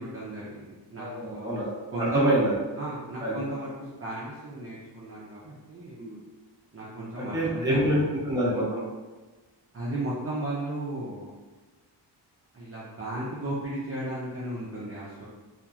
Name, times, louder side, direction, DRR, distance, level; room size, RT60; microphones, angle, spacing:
voice 1, 0.0-1.5 1.9-2.3 2.8-6.0 6.7-7.9 9.7-11.3 12.5-15.2, right 1 dB, 30° right, -8 dB, 0.5 m, -35 dB
voice 2, 1.0-2.5 3.2-3.4 6.0-6.2 7.2-8.8, right 1 dB, 10° right, -7 dB, 0.8 m, -26 dB
2.8 x 2.4 x 2.3 m, 1.2 s
wide cardioid pair, 125°, 44 cm